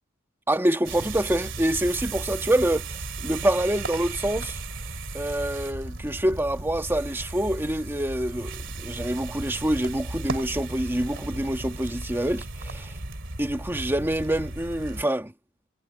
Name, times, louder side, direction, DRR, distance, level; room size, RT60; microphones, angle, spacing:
voice 1, 0.5-3.0 3.2-4.6 5.1-12.9 13.4-15.3, right 1 dB, 10° right, 1.4 m, -26 dB
sound 1, 0.8-15.0, right 2 dB, 60° right, 2.6 m, -35 dB
head